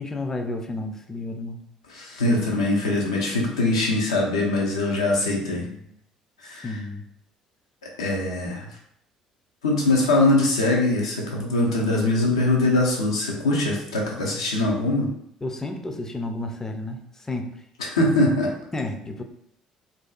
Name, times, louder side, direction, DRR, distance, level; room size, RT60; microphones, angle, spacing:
voice 1, 0.0-1.6 6.4-7.0 15.4-17.0 17.3-17.5 18.7-19.2, left 2 dB, 15° left, 4 dB, 0.4 m, -31 dB
voice 2, 1.9-5.7 6.4-6.8 8.0-8.7 9.6-15.1 17.8-18.5, left 2 dB, 80° left, -1 dB, 0.5 m, -22 dB
2.5 x 2.3 x 2.2 m, 0.74 s
figure-of-eight pair, 55°, 3 cm